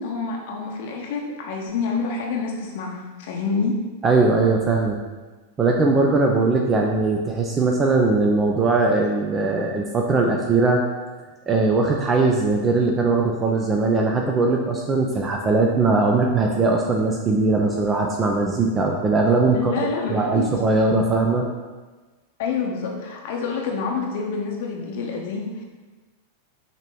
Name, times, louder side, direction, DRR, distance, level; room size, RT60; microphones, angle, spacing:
voice 1, 0.0-3.8 19.5-20.5 22.4-25.6, left 4 dB, 50° left, 0 dB, 0.8 m, -27 dB
voice 2, 4.0-5.0 5.6-10.8 11.5-19.7 20.1-21.5, right 3 dB, 20° right, 0 dB, 0.6 m, -20 dB
6.6 x 3.1 x 5.4 m, 1.3 s
figure-of-eight pair, 90°, 0 cm